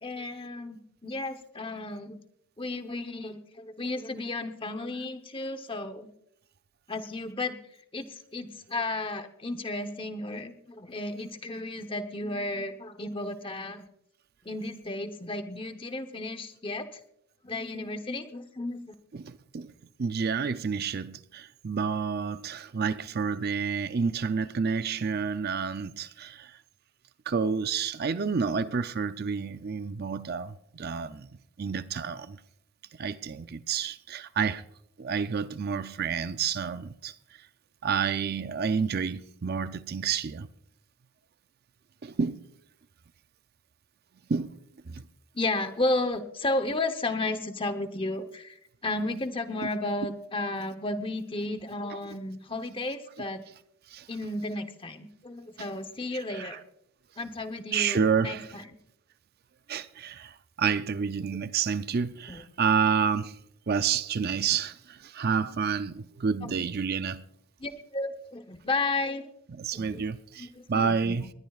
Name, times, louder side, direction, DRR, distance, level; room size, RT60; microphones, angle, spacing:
voice 1, 0.0-2.2 2.6-6.1 6.9-7.6 7.9-13.9 14.4-17.0 17.4-18.9 45.3-48.6 48.8-53.4 54.1-56.6 57.2-58.6 62.3-62.4 66.4-66.7 67.6-69.3 69.7-70.0 70.4-71.3, left 2 dB, 25° left, 0.9 m, -33 dB
voice 2, 19.1-19.7 20.0-26.6 27.3-31.3 31.6-32.4 33.0-34.6 35.0-37.1 37.8-40.5 42.0-42.5 44.3-44.6 44.9-45.0 51.9-52.0 53.9-54.1 56.3-56.6 57.7-58.5 59.7-63.4 63.7-67.2 69.6-71.2, right 6 dB, 45° right, 0.5 m, -29 dB
20.5 x 20.0 x 2.4 m
head